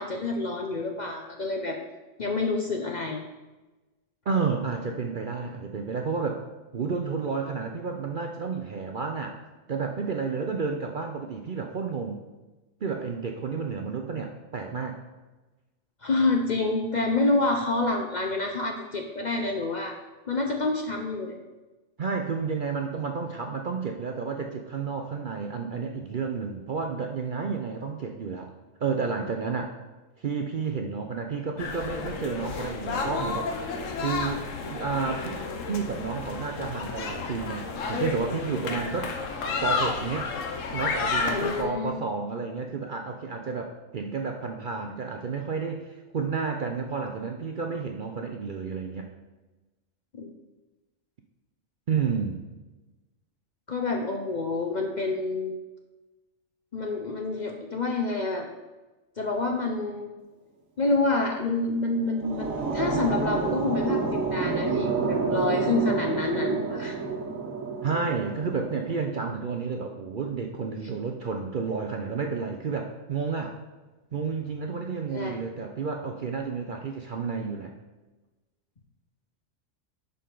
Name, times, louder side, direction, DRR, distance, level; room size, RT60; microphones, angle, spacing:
voice 1, 0.0-1.8 2.2-3.2 16.0-20.0 20.3-21.4 41.3-41.9 50.1-50.3 53.7-55.5 56.7-58.5 59.2-60.1 60.8-67.0 75.1-75.4, left 3 dB, 45° left, 2 dB, 0.6 m, -28 dB
voice 2, 4.3-6.4 6.7-9.3 9.7-12.2 12.8-15.0 22.0-28.5 28.8-29.7 30.2-33.5 34.0-40.3 40.7-49.1 51.9-52.4 67.8-73.6 74.1-77.7, right 5 dB, 50° right, 3 dB, 0.6 m, -31 dB
sound 1, 31.6-41.6, left 4 dB, 70° left, 1.2 m, -31 dB
sound 2, 61.8-69.0, right 4 dB, 75° right, 1.5 m, -29 dB
11.0 x 5.3 x 3.9 m, 1.1 s
omnidirectional pair, 1.4 m